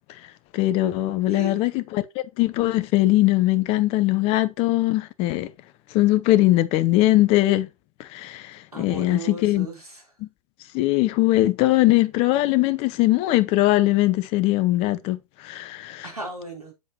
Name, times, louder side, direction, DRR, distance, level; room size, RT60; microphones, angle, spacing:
voice 1, 0.5-2.0 2.4-5.5 5.9-7.7 8.0-9.7 10.7-16.0, left 17 dB, 30° left, 0.8 m, -21 dB
voice 2, 1.2-1.6 8.7-10.1 16.0-16.7, right 2 dB, 90° right, 3.6 m, -36 dB
7.8 x 7.5 x 3.0 m
figure-of-eight pair, 110°, 19 cm